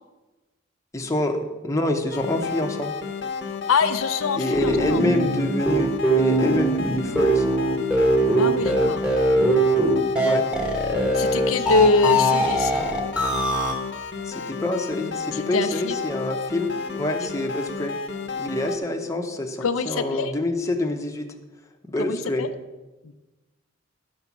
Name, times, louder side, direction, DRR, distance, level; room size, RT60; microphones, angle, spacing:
voice 1, 0.9-2.9 4.4-7.5 10.2-10.5 14.2-18.0 18.4-21.3 21.8-22.5, left 1 dB, 15° left, 2 dB, 0.9 m, -26 dB
sound 1, 2.1-18.8, left 5 dB, 60° left, 0.9 m, -32 dB
voice 2, 3.7-5.0 8.4-9.0 11.1-12.9 15.3-16.0 19.6-20.3 22.0-22.5 23.0-23.1, left 4 dB, 85° left, 9 dB, 0.6 m, -24 dB
sound 2, 4.5-13.7, right 1 dB, 5° right, 1.3 m, -21 dB
12.0 x 5.6 x 6.0 m, 1.1 s
head